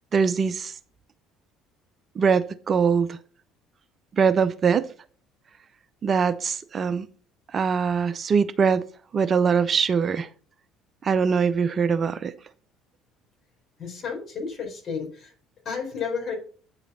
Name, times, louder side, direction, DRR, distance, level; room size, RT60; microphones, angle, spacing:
voice 1, 0.1-0.8 2.2-3.2 4.1-4.9 6.0-7.1 7.5-8.8 9.1-10.3 11.0-12.3, right 6 dB, 40° right, 0.5 m, -22 dB
voice 2, 13.8-15.3 15.6-16.3, left 5 dB, 45° left, 4.5 m, -32 dB
9.2 x 4.9 x 5.8 m
hypercardioid pair, 60°, 0 cm